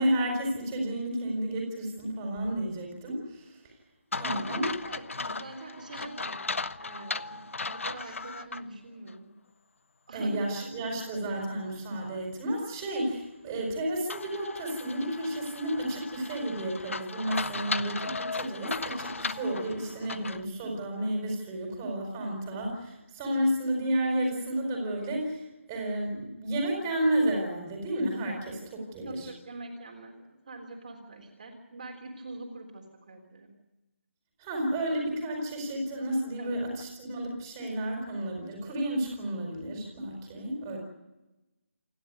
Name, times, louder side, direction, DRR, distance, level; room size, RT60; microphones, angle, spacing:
voice 1, 0.0-3.7 4.1-4.7 10.1-29.3 34.4-40.8, right 1 dB, 15° right, 1 dB, 4.6 m, -31 dB
sound 1, 4.1-8.6 9.1-9.2 14.1-20.5, left 3 dB, 70° left, 1.1 m, -36 dB
voice 2, 4.3-6.4 6.8-9.3 10.1-10.7 13.5-13.7 29.1-33.5 36.4-36.6 40.4-40.5, right 2 dB, 35° right, 1 dB, 3.7 m, -44 dB
28.5 x 12.0 x 9.5 m, 0.97 s
hypercardioid pair, 180°, 7 cm